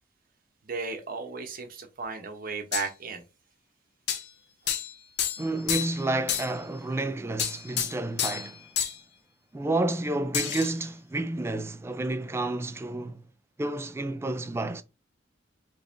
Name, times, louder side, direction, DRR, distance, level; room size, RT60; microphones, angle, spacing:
voice 1, 0.6-3.2, right 4 dB, 50° right, 0.8 m, -35 dB
sound 1, 2.7-2.9 4.1-4.2 4.7-4.9 5.2-6.0 6.3-6.5 7.4-8.5 8.8-9.0 10.3-10.7, left 9 dB, 60° left, 0.5 m, -29 dB
voice 2, 5.4-8.7 9.5-13.2 13.6-14.8, right 2 dB, 15° right, 0.3 m, -30 dB
3.5 x 3.3 x 2.5 m
head